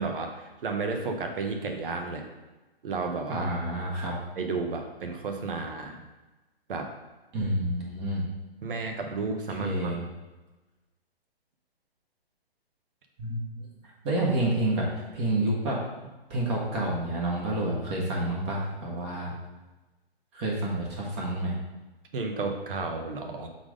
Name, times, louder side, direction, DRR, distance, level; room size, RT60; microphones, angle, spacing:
voice 1, 0.0-2.2 2.8-3.6 4.4-6.0 6.7-6.9 8.6-9.9 22.1-23.5, right 4 dB, 60° right, 4 dB, 1.2 m, -32 dB
voice 2, 3.3-4.1 7.3-8.2 9.6-10.0 13.2-13.4 14.0-15.8 16.3-19.3 20.3-21.5, right 1 dB, 25° right, -3 dB, 1.4 m, -28 dB
5.9 x 4.2 x 5.0 m, 1.1 s
hypercardioid pair, 145°, 31 cm